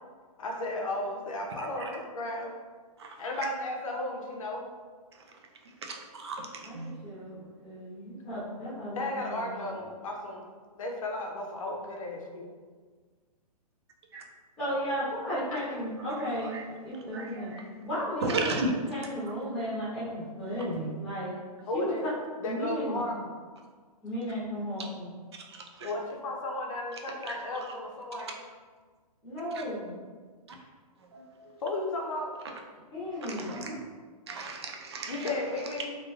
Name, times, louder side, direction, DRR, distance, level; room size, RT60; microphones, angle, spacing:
voice 1, 0.4-2.5 3.2-4.6 8.9-10.4 10.8-12.5 15.5-15.6 21.7-22.1 22.4-23.3 25.8-28.4 31.6-32.3 35.1-36.0, left 1 dB, 55° left, 0 dB, 0.6 m, -34 dB
voice 2, 5.8-6.5 6.7-6.9 14.1-14.2 17.1-17.6 18.2-18.7 25.8-25.9 27.3-27.4 31.1-31.2 33.4-33.8 34.3-35.3, right 3 dB, 45° right, 2 dB, 0.4 m, -34 dB
voice 3, 6.6-9.6 14.6-17.5 17.8-18.6 18.8-21.3 21.7-22.1 22.4-23.1 24.0-25.1 29.2-30.0 32.9-33.6, equal, 5° left, -12 dB, 0.8 m, -34 dB
3.1 x 2.4 x 2.3 m, 1.5 s
hypercardioid pair, 175°, 20 cm